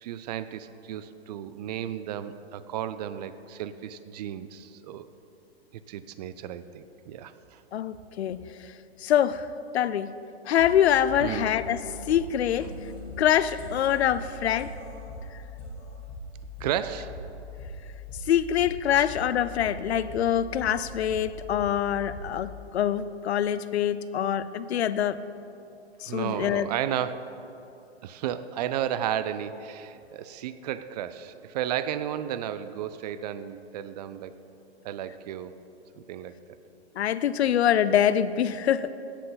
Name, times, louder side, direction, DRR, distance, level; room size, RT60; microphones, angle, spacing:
voice 1, 0.0-5.1 5.9-7.6 11.2-11.5 16.6-17.2 19.0-19.1 26.1-27.3 28.0-34.4 34.8-35.6 36.1-36.4, right 10 dB, 40° right, 13 dB, 0.4 m, -33 dB
voice 2, 7.7-8.7 9.0-9.5 9.7-10.1 10.5-11.8 12.1-12.7 13.2-14.7 18.3-25.2 26.0-26.7 37.0-38.9, left 10 dB, 80° left, 15 dB, 0.5 m, -25 dB
sound 1, 10.6-22.6, left 1 dB, 55° left, 2.4 m, -41 dB
16.5 x 5.5 x 4.0 m, 2.8 s
hypercardioid pair, 120°, 32 cm